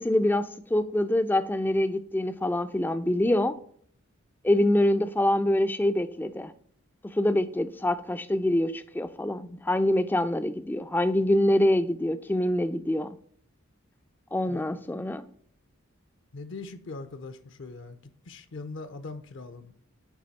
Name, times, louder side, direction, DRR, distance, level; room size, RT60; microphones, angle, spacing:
voice 1, 0.0-3.6 4.4-6.5 7.1-13.2 14.3-15.2, left 1 dB, 10° left, 0.3 m, -25 dB
voice 2, 16.3-18.0 18.3-19.7, left 3 dB, 60° left, 0.6 m, -41 dB
9.5 x 3.5 x 4.1 m
head